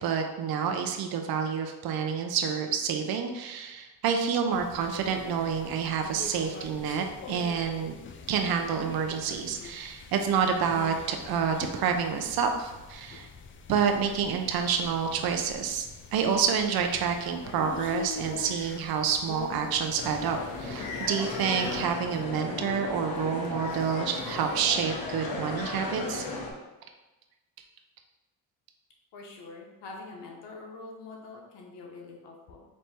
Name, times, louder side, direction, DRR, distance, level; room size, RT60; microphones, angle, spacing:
voice 1, 0.0-7.9 8.3-13.3 13.7-26.2, right 6 dB, 60° right, 4 dB, 0.6 m, -28 dB
sound 1, 4.5-21.9, left 6 dB, 30° left, 0.4 m, -44 dB
sound 2, 20.0-26.5, left 3 dB, 60° left, 0.9 m, -35 dB
voice 2, 29.1-32.6, left 3 dB, 80° left, -1 dB, 0.9 m, -45 dB
4.2 x 2.7 x 3.4 m, 1.1 s
cardioid pair, 85°, 42 cm